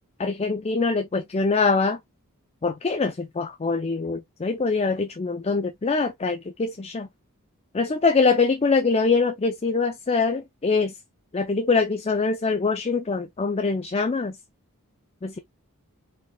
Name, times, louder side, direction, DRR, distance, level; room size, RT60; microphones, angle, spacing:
voice 1, 0.2-2.0 2.6-7.1 7.7-10.9 11.3-14.4 15.2-15.4, left 4 dB, 30° left, 0.4 m, -23 dB
4.4 x 3.8 x 2.2 m
head